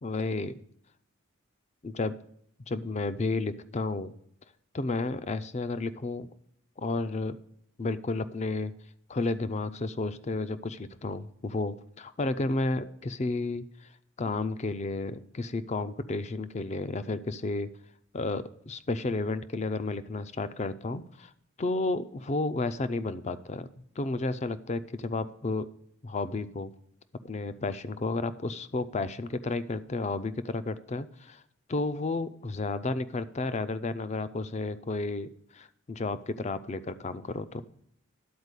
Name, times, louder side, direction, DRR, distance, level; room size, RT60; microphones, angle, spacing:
voice 1, 0.0-0.5 1.8-2.2 2.6-4.1 4.7-6.3 6.8-7.4 7.8-8.7 9.1-13.9 14.2-17.7 18.1-21.3 21.6-23.7 24.0-25.7 26.0-26.7 27.2-31.4 31.7-37.6, left 3 dB, 30° left, 13 dB, 0.4 m, -32 dB
11.0 x 4.4 x 8.1 m, 0.70 s
head